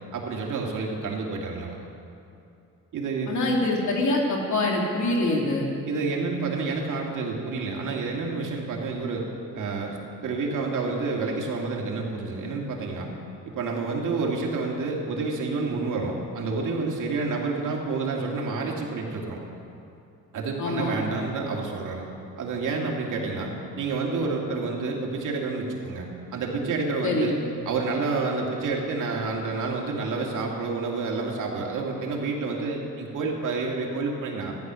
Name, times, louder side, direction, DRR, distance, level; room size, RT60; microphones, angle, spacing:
voice 1, 0.1-1.8 2.9-3.3 5.9-9.2 9.5-13.1 13.6-19.4 20.3-22.0 22.4-23.5 23.8-27.3 27.7-34.5, right 3 dB, 75° right, -1 dB, 2.4 m, -29 dB
voice 2, 3.3-5.7 20.6-21.0 27.0-27.3, left 2 dB, 65° left, -1 dB, 2.9 m, -24 dB
14.5 x 11.0 x 6.3 m, 2.7 s
cardioid pair, 90°, 31 cm